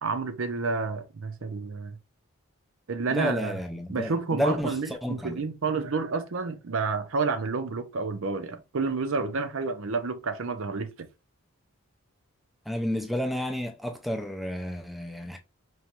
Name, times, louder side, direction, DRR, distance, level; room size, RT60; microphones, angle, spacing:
voice 1, 0.0-2.0 2.9-3.6 3.9-10.9, right 4 dB, 65° right, 0.6 m, -30 dB
voice 2, 3.1-5.4 12.7-15.4, equal, ahead, 0.5 m, -31 dB
4.7 x 3.1 x 2.8 m
head